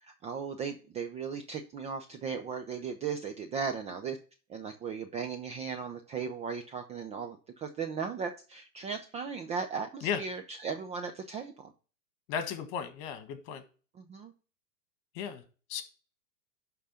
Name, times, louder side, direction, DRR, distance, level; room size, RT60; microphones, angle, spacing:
voice 1, 0.0-4.2 4.5-11.7 14.0-14.3, right 6 dB, 15° right, 5 dB, 0.4 m, -37 dB
voice 2, 12.3-13.6 15.2-15.4 15.7-15.8, left 8 dB, 45° left, 9 dB, 1.8 m, -34 dB
11.5 x 3.8 x 5.6 m, 0.37 s
hypercardioid pair, 110°, 47 cm